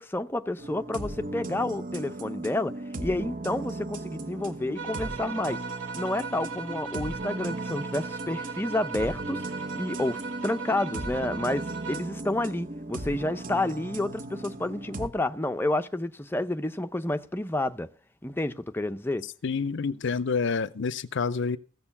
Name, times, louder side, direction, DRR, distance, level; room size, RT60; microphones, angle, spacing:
voice 1, 0.0-2.7 3.0-5.6 6.0-17.9 18.2-19.3, left 1 dB, 10° left, 0.6 m, -30 dB
sound 1, 0.6-15.1, right 2 dB, 40° right, 1.1 m, -37 dB
sound 2, 4.8-12.2, right 5 dB, 60° right, 1.8 m, -38 dB
sound 3, 13.3-16.8, right 5 dB, 80° right, 5.9 m, -56 dB
voice 2, 19.4-21.6, left 5 dB, 60° left, 0.5 m, -28 dB
15.0 x 6.7 x 7.0 m
head